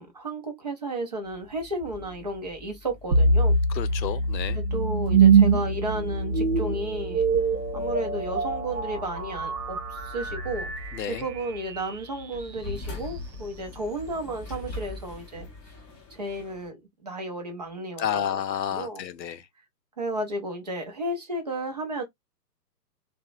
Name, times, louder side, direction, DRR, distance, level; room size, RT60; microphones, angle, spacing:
voice 1, 0.0-3.6 4.5-7.3 7.7-10.7 11.0-15.5 16.1-18.4 18.7-19.0 20.0-22.0, right 1 dB, 30° right, 0.3 m, -33 dB
sound 1, 1.2-16.7, left 2 dB, 20° left, 0.6 m, -44 dB
sound 2, 3.1-12.2, right 4 dB, 65° right, 0.8 m, -24 dB
voice 2, 3.7-4.6 10.9-11.3 18.0-19.5, left 9 dB, 85° left, 0.6 m, -30 dB
2.8 x 2.0 x 2.4 m
figure-of-eight pair, 125°, 50 cm